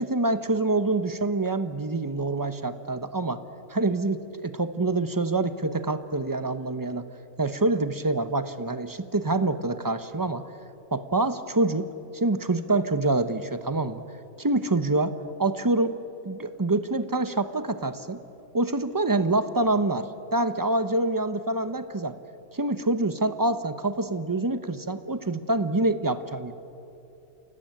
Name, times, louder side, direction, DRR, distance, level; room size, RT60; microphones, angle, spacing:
voice 1, 0.0-3.4 3.7-7.1 7.4-10.4 10.9-11.9 12.1-14.0 14.4-15.9 16.2-18.2 18.5-22.2 22.5-26.5, right 2 dB, 20° right, 11 dB, 0.7 m, -26 dB
29.0 x 17.5 x 9.0 m, 2.8 s
omnidirectional pair, 1.6 m